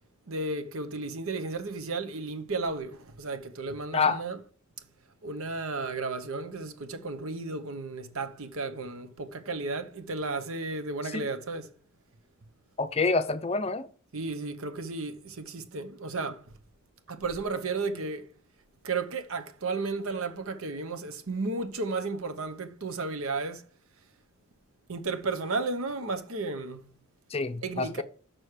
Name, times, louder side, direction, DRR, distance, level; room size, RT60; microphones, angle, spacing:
voice 1, 0.3-4.4 5.2-11.7 14.1-16.4 17.1-18.3 18.8-23.7 24.9-26.9 27.6-28.0, right 3 dB, 70° right, 0.9 m, -33 dB
voice 2, 12.8-13.9 27.3-28.0, left 4 dB, 25° left, 0.6 m, -27 dB
6.2 x 6.1 x 4.9 m
head